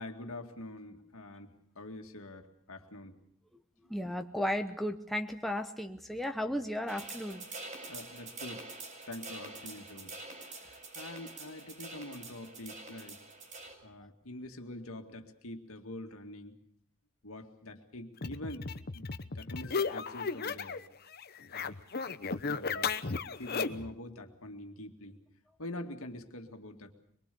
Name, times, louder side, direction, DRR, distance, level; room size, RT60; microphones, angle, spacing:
voice 1, 0.0-3.2 7.9-8.7 9.1-10.2 10.6-13.2 13.8-16.5 17.2-18.7 18.9-20.8 21.5-21.8 22.4-22.9 23.4-25.2 25.6-26.9, left 1 dB, 70° left, 5 dB, 2.2 m, -45 dB
voice 2, 3.9-7.4, left 1 dB, ahead, 5 dB, 0.9 m, -34 dB
sound 1, 6.9-13.7, right 3 dB, 35° right, 5.2 m, -46 dB
sound 2, 18.2-20.9 21.1-23.9, left 5 dB, 45° left, 0.9 m, -35 dB
23.5 x 23.0 x 6.9 m, 0.66 s
head